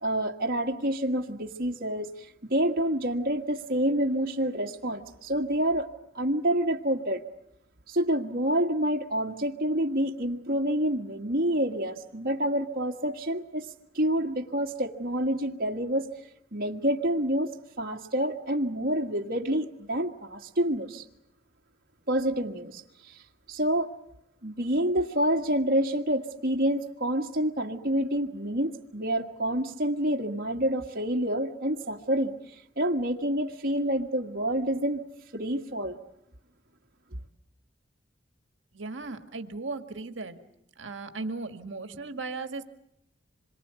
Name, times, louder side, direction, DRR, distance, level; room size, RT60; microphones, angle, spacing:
voice 1, 0.0-5.9 6.1-7.2 7.9-13.7 13.9-16.1 16.5-17.5 17.8-21.0 22.1-23.2 23.5-23.9 24.4-32.3 32.8-35.0 35.3-36.0, right 1 dB, 50° right, 0 dB, 1.7 m, -28 dB
voice 2, 38.7-40.4 40.8-42.6, right 3 dB, 70° right, 7 dB, 1.9 m, -36 dB
26.5 x 23.0 x 8.2 m, 0.80 s
head